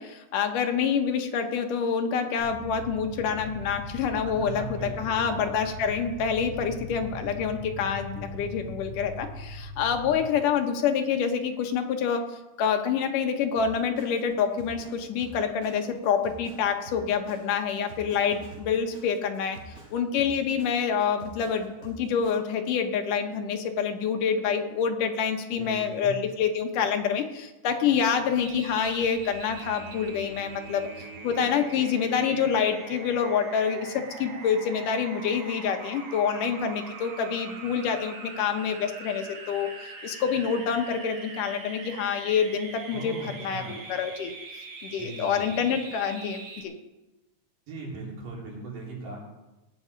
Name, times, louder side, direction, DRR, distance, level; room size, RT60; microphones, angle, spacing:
voice 1, 0.0-12.3 12.6-19.6 19.9-44.3 44.8-46.7, left 7 dB, 75° left, 5 dB, 2.7 m, -27 dB
sound 1, 2.4-10.1, left 1 dB, 40° left, 7.7 m, -40 dB
voice 2, 4.2-5.3 25.6-26.1 42.9-43.8 45.0-45.6 47.7-49.2, right 3 dB, 75° right, -4 dB, 5.3 m, -39 dB
Drum kit, 13.6-22.3, right 2 dB, 25° right, 6.1 m, -47 dB
sound 2, 28.4-46.6, right 4 dB, 45° right, 1.3 m, -42 dB
18.5 x 9.0 x 5.2 m, 1.0 s
omnidirectional pair, 3.8 m